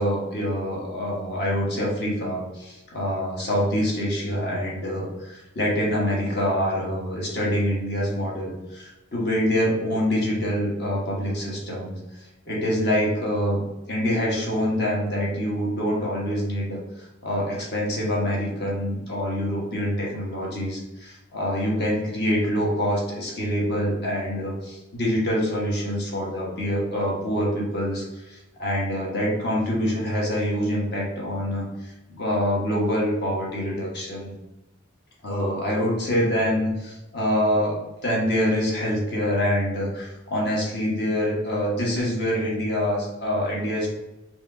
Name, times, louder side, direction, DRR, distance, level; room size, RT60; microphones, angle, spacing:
voice 1, 0.0-12.0 12.5-13.6 13.9-16.8 17.2-34.3 35.2-43.9, equal, 55° left, -4 dB, 1.3 m, -25 dB
4.6 x 2.9 x 2.7 m, 0.99 s
head